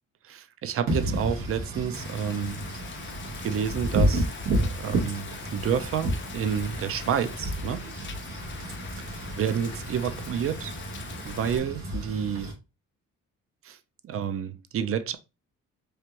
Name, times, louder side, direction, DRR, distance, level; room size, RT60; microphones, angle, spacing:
voice 1, 0.2-2.6 3.4-4.3 4.6-7.9 9.0-10.8 11.2-12.6 13.6-13.8 14.0-15.2, right 8 dB, 50° right, 0.5 m, -29 dB
Wind / Rain, 0.9-12.5, right 1 dB, 85° right, 1.4 m, -31 dB
Rain, 1.9-11.6, left 7 dB, 40° left, 0.5 m, -43 dB
3.3 x 2.5 x 2.8 m
cardioid pair, 90°, 30 cm